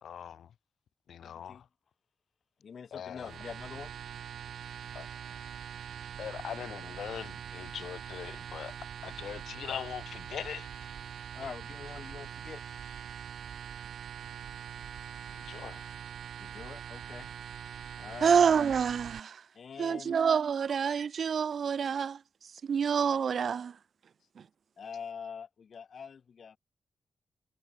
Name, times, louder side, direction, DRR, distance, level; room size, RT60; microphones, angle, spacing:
voice 1, 0.0-0.5 1.1-1.7 2.9-3.4 4.9-5.1 6.2-8.8 9.0-10.7 15.3-15.9, left 9 dB, 85° left, 3.1 m, -41 dB
voice 2, 1.2-1.6 2.6-3.9 11.3-12.6 16.4-17.3 18.0-18.4 19.5-20.1 24.8-26.6, left 6 dB, 50° left, 5.2 m, -44 dB
sound 1, 3.2-19.2, right 8 dB, 75° right, 1.0 m, -43 dB
voice 3, 18.2-19.4 19.8-22.2 22.7-23.7, right 7 dB, 50° right, 0.5 m, -27 dB
wide cardioid pair, 175°, 0 cm